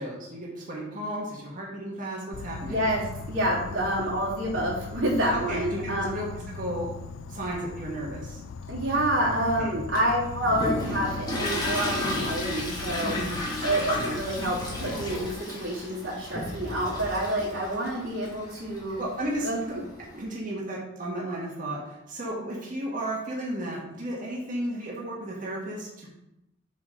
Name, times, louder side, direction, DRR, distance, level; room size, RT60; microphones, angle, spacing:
voice 1, 0.0-2.8 5.5-6.9 7.3-8.4 9.4-9.8 13.0-13.4 19.0-19.5 20.2-26.1, right 1 dB, 40° right, -4 dB, 1.6 m, -34 dB
Insect, 2.3-15.3, left 4 dB, 80° left, 0.4 m, -39 dB
voice 2, 2.6-6.2 8.7-13.2 13.6-19.0 19.4-19.8 20.1-20.3, right 1 dB, 90° right, -5 dB, 2.9 m, -28 dB
Toilet flush, 9.9-20.2, left 1 dB, 20° left, 1.8 m, -33 dB
7.5 x 4.2 x 5.3 m, 0.87 s
head